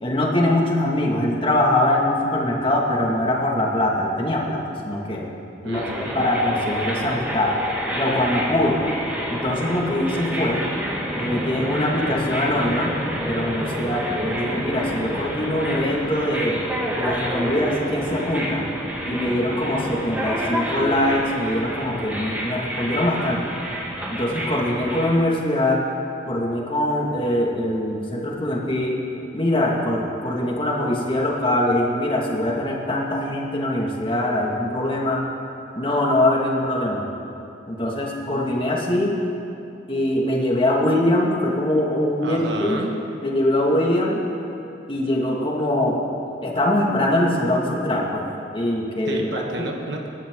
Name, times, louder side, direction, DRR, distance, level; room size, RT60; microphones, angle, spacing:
voice 1, 0.0-5.3 5.6-7.5 7.9-8.8 9.3-10.6 11.1-12.9 13.2-16.6 17.0-18.7 19.1-23.4 24.1-25.8 26.3-29.0 29.3-35.2 35.7-37.0 37.7-39.2 39.9-42.9 43.2-44.2 44.9-46.0 46.4-49.2, left 1 dB, 30° left, -2 dB, 2.1 m, -22 dB
voice 2, 5.6-6.2 42.2-42.9 49.0-50.1, right 2 dB, 75° right, 1 dB, 1.4 m, -31 dB
sound 1, 5.7-25.1, equal, 10° right, 1.9 m, -28 dB
25.0 x 11.0 x 3.8 m, 2.7 s
head